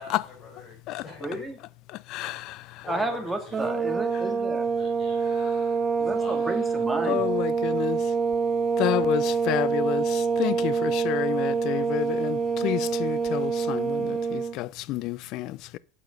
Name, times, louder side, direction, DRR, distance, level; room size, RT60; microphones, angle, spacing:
voice 1, 0.0-1.4 2.2-3.6 4.7-5.2 6.0-6.4, left 3 dB, 35° left, 4.5 m, -44 dB
voice 2, 1.2-1.6 2.9-4.7 6.0-7.3, right 2 dB, 10° right, 2.1 m, -32 dB
sound 1, 3.5-14.6, right 5 dB, 25° right, 1.4 m, -26 dB
voice 3, 7.1-8.0 8.8-10.0 10.4-12.4 12.6-13.8 14.6-15.5, left 16 dB, 55° left, 0.5 m, -28 dB
8.3 x 6.8 x 5.2 m
hypercardioid pair, 95°, 0 cm